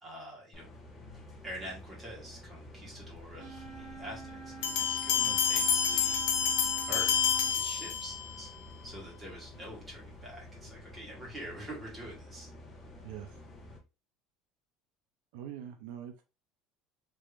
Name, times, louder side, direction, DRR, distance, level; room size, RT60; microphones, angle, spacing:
voice 1, 0.0-0.7 1.4-6.2 6.9-8.5 8.8-12.5, right 1 dB, 15° right, 1.6 m, -45 dB
sound 1, 0.5-13.8, left 1 dB, 20° left, 0.8 m, -50 dB
sound 2, 3.4-7.5, right 4 dB, 45° right, 1.7 m, -47 dB
sound 3, 4.6-8.4, left 8 dB, 75° left, 0.6 m, -28 dB
voice 2, 13.0-13.4 15.3-16.2, right 10 dB, 80° right, 0.5 m, -43 dB
3.3 x 3.1 x 2.4 m
cardioid pair, 160°, 0 cm